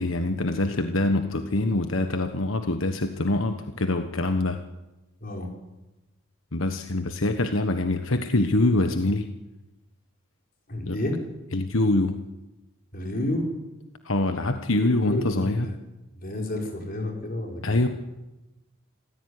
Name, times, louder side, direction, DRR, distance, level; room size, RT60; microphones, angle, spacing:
voice 1, 0.0-4.6 6.5-9.3 10.9-11.0 11.5-12.2 14.0-15.7 17.6-17.9, left 2 dB, 80° left, 7 dB, 1.4 m, -24 dB
voice 2, 10.7-11.2 12.9-13.5 14.9-15.7 16.1-17.9, left 1 dB, 45° left, 2 dB, 5.2 m, -31 dB
26.5 x 16.0 x 9.8 m, 1.0 s
head